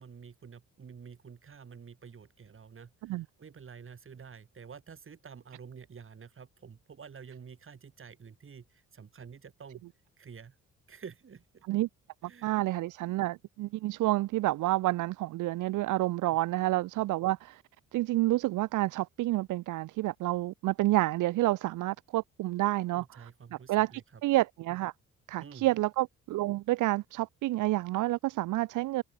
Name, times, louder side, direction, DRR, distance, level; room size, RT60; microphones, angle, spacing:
voice 1, 0.0-9.8 10.2-10.6 10.9-11.6 12.2-12.6 16.3-16.4 22.9-24.2 25.4-25.7, right 6 dB, 45° right, 7.0 m, -49 dB
voice 2, 12.4-17.6 17.9-23.0 23.5-24.9 25.3-29.0, right 17 dB, 85° right, 0.9 m, -29 dB
cardioid pair, 90°, 30 cm